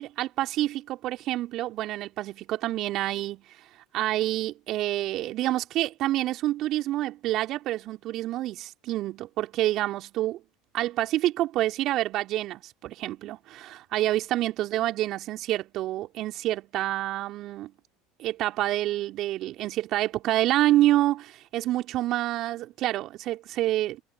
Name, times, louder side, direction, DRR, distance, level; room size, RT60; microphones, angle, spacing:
voice 1, 0.0-3.4 3.9-10.4 10.7-17.7 18.2-24.0, right 15 dB, 50° right, 3.1 m, -27 dB
hypercardioid pair, 75°, 0 cm